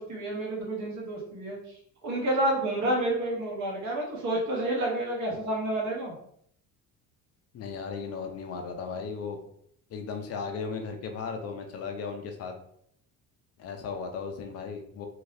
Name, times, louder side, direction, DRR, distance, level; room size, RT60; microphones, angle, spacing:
voice 1, 0.0-1.6 2.0-6.1, right 1 dB, 50° right, -2 dB, 0.9 m, -29 dB
voice 2, 7.5-9.4 9.9-12.5 13.6-15.1, left 5 dB, 45° left, 4 dB, 0.5 m, -36 dB
2.8 x 2.6 x 3.2 m, 0.68 s
cardioid pair, 170°, 36 cm